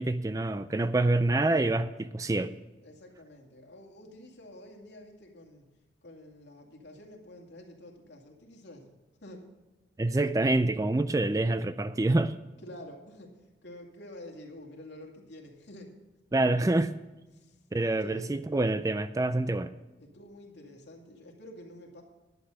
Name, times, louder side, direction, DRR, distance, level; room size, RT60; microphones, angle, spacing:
voice 1, 0.0-2.5 10.0-12.3 16.3-16.9 17.7-19.7, right 2 dB, 20° right, 12 dB, 0.3 m, -26 dB
voice 2, 2.8-5.7 6.0-8.9 9.2-9.5 12.6-15.9 17.3-17.6 18.0-18.4 20.0-22.0, left 1 dB, 80° left, 1 dB, 2.3 m, -49 dB
11.5 x 8.2 x 6.5 m, 1.1 s
head